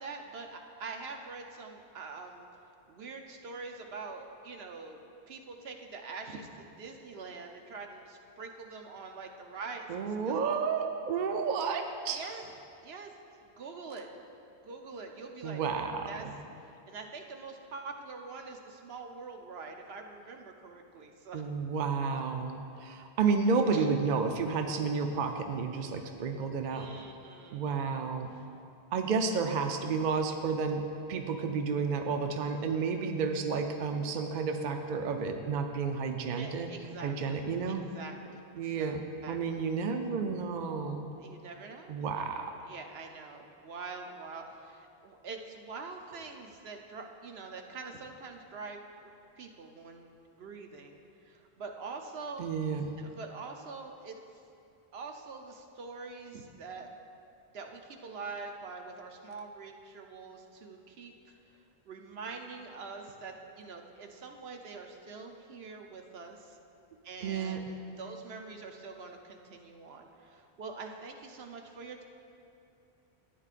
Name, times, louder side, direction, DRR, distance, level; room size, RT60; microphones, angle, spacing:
voice 1, 0.0-2.5 2.9-5.0 5.3-10.4 12.1-12.4 12.8-13.1 13.4-14.1 14.5-15.6 16.1-16.3 16.9-21.5 23.7-23.9 26.7-28.5 36.3-39.7 41.2-52.5 53.0-54.2 54.9-56.9 57.5-66.6 67.0-72.0, right 4 dB, 75° right, 3 dB, 1.0 m, -45 dB
voice 2, 9.9-12.2 15.4-16.3 21.3-26.9 27.5-28.3 28.9-30.8 31.1-36.7 37.0-37.8 38.6-39.0 39.3-41.1 41.9-42.5 52.4-52.9 67.2-67.6, right 5 dB, 55° right, 5 dB, 0.6 m, -31 dB
13.5 x 9.3 x 2.5 m, 2.6 s
omnidirectional pair, 1.1 m